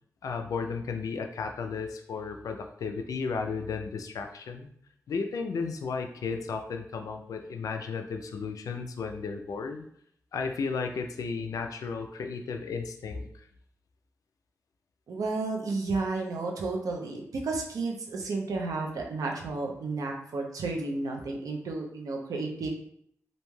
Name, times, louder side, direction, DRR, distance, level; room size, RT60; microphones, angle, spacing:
voice 1, 0.2-4.7 5.1-9.8 10.3-13.5, left 5 dB, 80° left, 5 dB, 0.3 m, -34 dB
voice 2, 15.1-22.7, right 3 dB, 85° right, 1 dB, 0.5 m, -32 dB
2.6 x 2.2 x 3.1 m, 0.68 s
wide cardioid pair, 85°, 6 cm